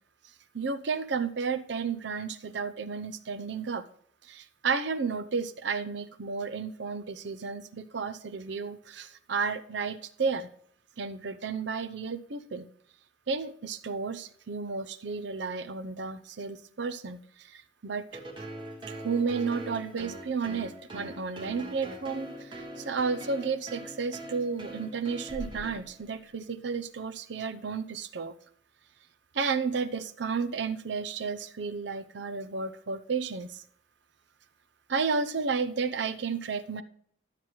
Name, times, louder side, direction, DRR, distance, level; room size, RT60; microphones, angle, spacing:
voice 1, 0.5-3.8 4.3-10.5 11.0-12.7 13.3-18.0 18.9-28.3 29.3-33.6 34.9-36.8, right 5 dB, 70° right, 0.6 m, -32 dB
sound 1, 18.1-26.2, right 1 dB, 25° right, 1.2 m, -42 dB
12.0 x 7.5 x 3.1 m
head